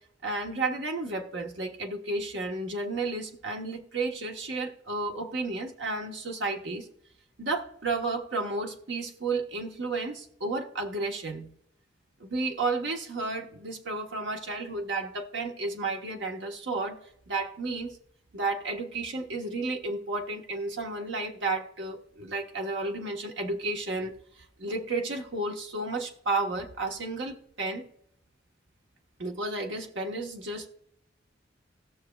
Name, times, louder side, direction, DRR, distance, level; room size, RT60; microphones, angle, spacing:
voice 1, 0.2-6.9 7.4-11.5 12.2-17.0 17.3-18.0 18.3-27.8 29.2-30.7, right 3 dB, 70° right, 2 dB, 1.2 m, -32 dB
19.0 x 6.4 x 2.3 m, 0.72 s
head